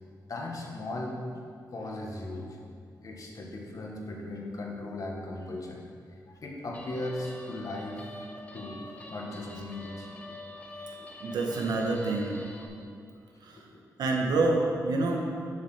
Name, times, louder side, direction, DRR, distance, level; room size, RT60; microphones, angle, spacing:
voice 1, 0.3-1.2 1.7-2.6 3.0-5.8 6.3-8.1 8.5-8.8 9.1-10.4 10.9-11.1 12.7-12.8 13.5-13.8 15.0-15.1, left 2 dB, 55° left, 0 dB, 1.7 m, -38 dB
Guitar, 6.7-12.7, left 1 dB, 20° left, 1.3 m, -46 dB
voice 2, 11.2-12.4 13.4-13.6 14.0-15.3, right 2 dB, 85° right, 0 dB, 1.5 m, -27 dB
7.5 x 7.0 x 6.7 m, 2.3 s
cardioid pair, 95°, 7 cm